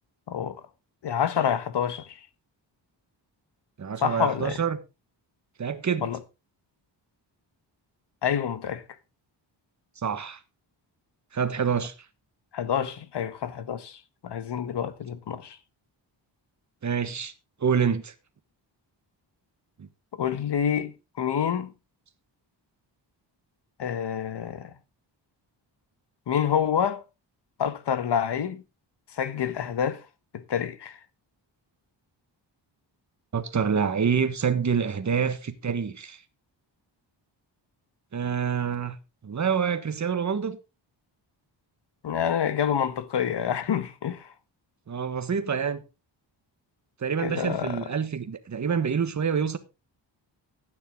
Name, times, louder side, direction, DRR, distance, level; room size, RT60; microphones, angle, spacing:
voice 1, 0.3-0.6 1.0-2.2 4.0-4.6 6.0-6.2 8.2-8.8 12.5-15.6 20.1-21.7 23.8-24.7 26.3-27.0 27.6-28.6 29.1-30.0 30.3-31.0 42.0-44.3 47.2-47.9, left 8 dB, 65° left, 1.3 m, -28 dB
voice 2, 3.8-4.8 5.6-6.1 10.0-10.4 11.3-11.9 16.8-17.3 17.6-18.1 19.8-19.9 33.3-36.2 38.1-39.0 39.2-40.6 44.9-45.8 47.0-49.6, right 6 dB, 40° right, 1.3 m, -27 dB
12.5 x 9.5 x 3.7 m
wide cardioid pair, 135°, 45 cm